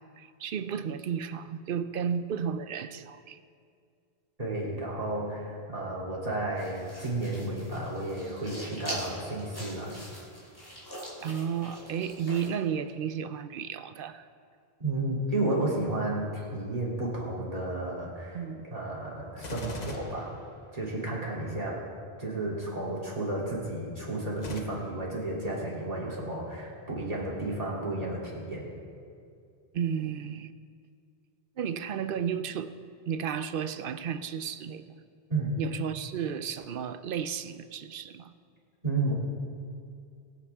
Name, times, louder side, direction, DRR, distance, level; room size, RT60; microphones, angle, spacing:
voice 1, 0.2-3.4 11.2-14.3 18.3-18.7 21.4-21.6 29.7-30.5 31.6-32.7 33.1-35.0 35.6-38.3, right 7 dB, 65° right, 12 dB, 0.8 m, -33 dB
voice 2, 4.4-9.9 14.8-18.4 18.7-20.3 20.7-21.8 22.2-28.7 35.3-35.5 38.8-39.1, right 2 dB, 35° right, -6 dB, 3.1 m, -32 dB
sound 1, 6.6-12.5, equal, 20° left, 3.4 m, -43 dB
Gunshot gunfire, 19.4-21.1 24.4-24.6, left 3 dB, 45° left, 1.1 m, -42 dB
22.5 x 8.4 x 3.6 m, 2.3 s
omnidirectional pair, 1.0 m